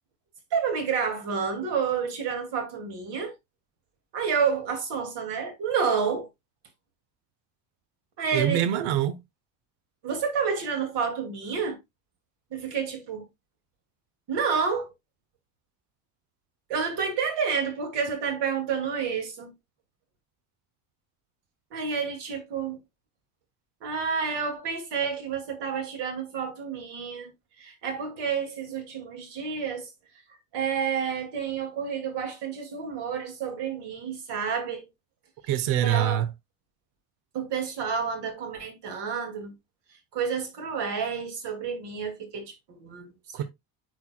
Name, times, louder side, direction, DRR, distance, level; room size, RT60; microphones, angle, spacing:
voice 1, 0.5-3.3 4.1-6.3 8.2-8.6 10.0-11.8 12.5-13.2 14.3-14.9 16.7-19.5 21.7-22.8 23.8-27.3 27.6-29.9 30.5-34.9 35.8-36.2 37.3-39.5 40.1-43.4, right 6 dB, 55° right, 2.4 m, -29 dB
voice 2, 8.3-9.2 35.5-36.3 43.3-43.4, right 11 dB, 70° right, 0.8 m, -24 dB
9.7 x 4.6 x 2.2 m
cardioid pair, 165°, 49 cm